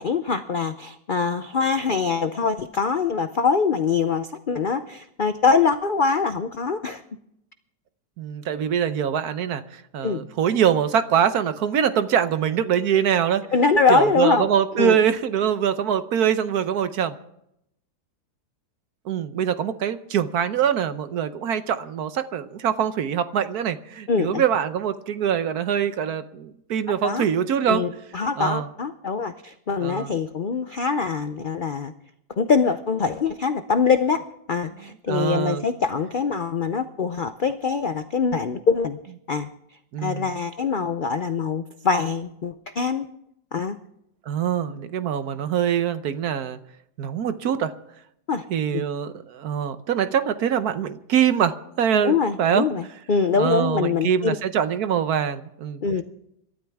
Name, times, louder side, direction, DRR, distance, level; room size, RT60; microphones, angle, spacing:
voice 1, 0.0-7.0 10.0-10.2 13.5-14.5 14.8-15.0 24.1-24.4 27.0-27.2 27.7-31.9 32.4-39.0 39.3-39.5 40.0-43.1 43.5-43.8 48.3-48.5 48.7-48.9 52.0-54.3 55.8-56.0, left 5 dB, 60° left, 9 dB, 0.5 m, -23 dB
voice 2, 8.2-13.4 13.9-17.2 19.0-27.8 28.4-28.7 29.8-30.1 34.8-35.6 39.9-40.4 44.3-46.6 47.0-47.7 48.5-52.7 53.4-55.8, right 8 dB, 70° right, 11 dB, 1.3 m, -24 dB
26.5 x 13.0 x 3.5 m, 0.77 s
omnidirectional pair, 1.8 m